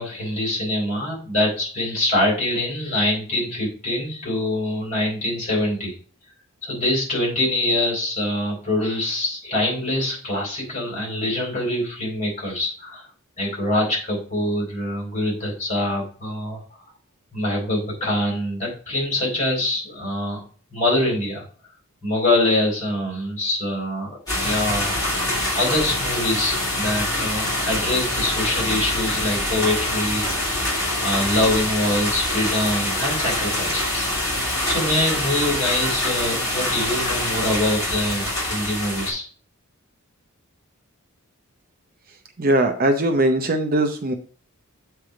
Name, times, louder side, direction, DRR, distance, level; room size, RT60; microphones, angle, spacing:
voice 1, 0.0-5.9 6.6-13.0 13.4-16.6 17.3-20.4 20.7-21.4 22.0-24.9 25.5-30.5 31.0-34.1 34.7-39.2, left 1 dB, 35° left, -2 dB, 4.2 m, -24 dB
sound 1, 24.3-39.1, left 1 dB, 15° left, 3.4 m, -25 dB
voice 2, 42.4-44.1, right 1 dB, 40° right, 6 dB, 0.7 m, -20 dB
7.6 x 3.4 x 5.7 m, 0.41 s
head